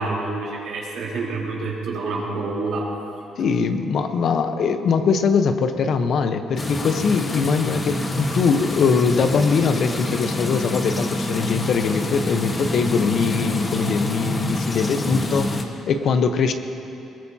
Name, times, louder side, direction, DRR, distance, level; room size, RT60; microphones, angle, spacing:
voice 1, 0.0-2.9, right 3 dB, 75° right, -4 dB, 3.7 m, -27 dB
voice 2, 3.4-15.5 15.9-16.5, left 5 dB, 60° left, 8 dB, 0.9 m, -21 dB
sound 1, 6.6-15.6, left 1 dB, 30° left, 1.4 m, -26 dB
21.0 x 19.5 x 2.9 m, 2.9 s
cardioid pair, 95°, 0 cm